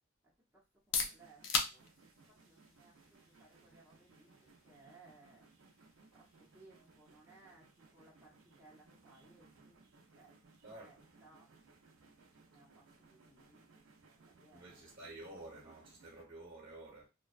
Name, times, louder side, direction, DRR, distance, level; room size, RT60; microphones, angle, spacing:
voice 1, 0.5-1.9 2.3-5.5 6.1-9.8 10.1-11.5 12.5-13.7 14.3-14.9, right 3 dB, 10° right, 0.7 m, -64 dB
sound 1, 0.6-16.3, left 5 dB, 70° left, 0.5 m, -46 dB
sound 2, 1.0-16.2, right 3 dB, 85° right, 0.5 m, -64 dB
voice 2, 10.6-11.0 14.5-17.1, right 2 dB, 45° right, 1.0 m, -51 dB
2.6 x 2.2 x 2.3 m
head